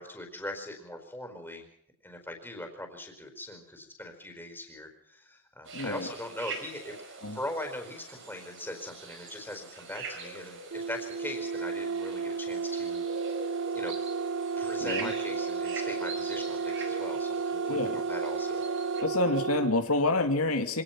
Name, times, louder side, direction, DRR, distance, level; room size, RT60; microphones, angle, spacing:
voice 1, 0.0-1.7 2.0-13.0 13.7-13.9 14.6-18.6, left 1 dB, 10° left, 4 dB, 4.7 m, -41 dB
sound 1, 5.6-19.0, right 4 dB, 60° right, 5.3 m, -43 dB
voice 2, 5.7-6.1 7.2-7.4 14.8-15.1 17.7-18.0 19.0-20.8, left 2 dB, 75° left, 6 dB, 2.2 m, -28 dB
sound 2, 10.7-19.8, right 5 dB, 75° right, 0.9 m, -32 dB
25.5 x 18.0 x 6.0 m, 0.70 s
head